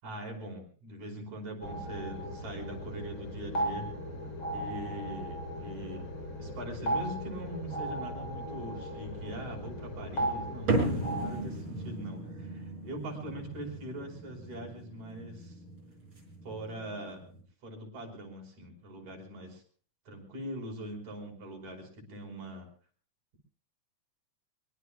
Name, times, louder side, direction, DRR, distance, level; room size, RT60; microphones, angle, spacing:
voice 1, 0.0-3.9 4.4-6.1 6.4-15.6 16.4-17.3 17.6-19.6 20.1-22.7, right 1 dB, 65° right, 2 dB, 6.6 m, -42 dB
sound 1, 1.6-11.3, right 1 dB, 40° left, 4.4 m, -37 dB
sound 2, 10.7-17.4, right 2 dB, 40° right, 5.8 m, -36 dB
24.0 x 23.0 x 2.3 m, 0.42 s
omnidirectional pair, 3.5 m